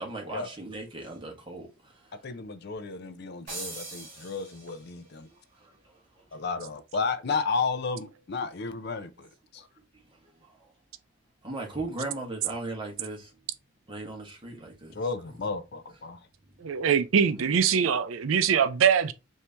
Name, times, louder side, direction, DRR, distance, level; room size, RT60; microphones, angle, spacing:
voice 1, 0.0-2.2 5.6-6.2 9.9-10.7 11.4-13.3 13.9-15.0 15.2-15.4, right 2 dB, 25° right, 1.2 m, -38 dB
voice 2, 2.2-5.3 6.3-9.7 14.9-16.2, left 4 dB, 55° left, 0.5 m, -33 dB
sound 1, 3.5-5.1, right 2 dB, 40° right, 2.0 m, -41 dB
voice 3, 16.6-19.1, right 7 dB, 90° right, 0.4 m, -23 dB
4.4 x 2.7 x 3.3 m
head